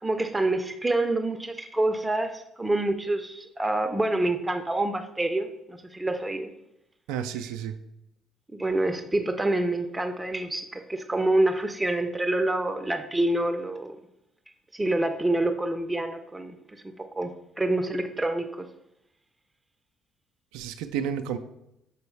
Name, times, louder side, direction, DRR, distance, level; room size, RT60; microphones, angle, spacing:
voice 1, 0.0-6.5 8.5-14.0 14.7-16.8 17.2-18.7, right 2 dB, 15° right, 8 dB, 0.6 m, -27 dB
voice 2, 7.1-7.8 20.5-21.4, right 8 dB, 70° right, 8 dB, 0.4 m, -31 dB
7.1 x 4.5 x 3.2 m, 0.83 s
figure-of-eight pair, 50°, 0 cm